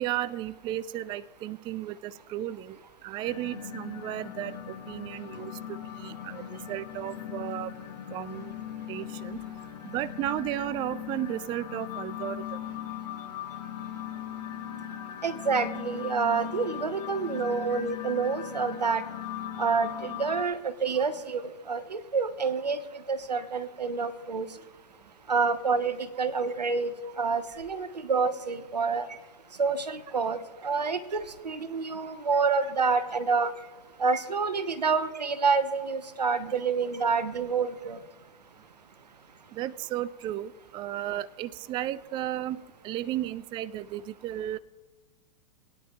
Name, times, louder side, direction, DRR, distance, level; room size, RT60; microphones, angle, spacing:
voice 1, 0.0-7.7 8.1-8.5 8.9-9.4 9.8-12.6 31.1-31.2 39.5-44.6, right 13 dB, 25° right, 19 dB, 0.3 m, -34 dB
sound 1, 3.2-20.4, left 10 dB, 60° left, 1.3 m, -39 dB
voice 2, 15.2-19.0 19.6-22.8 23.1-24.5 25.3-29.1 29.6-33.5 34.0-38.0, right 5 dB, 90° right, 13 dB, 0.9 m, -28 dB
20.5 x 9.6 x 3.0 m, 1.2 s
hypercardioid pair, 105°, 20 cm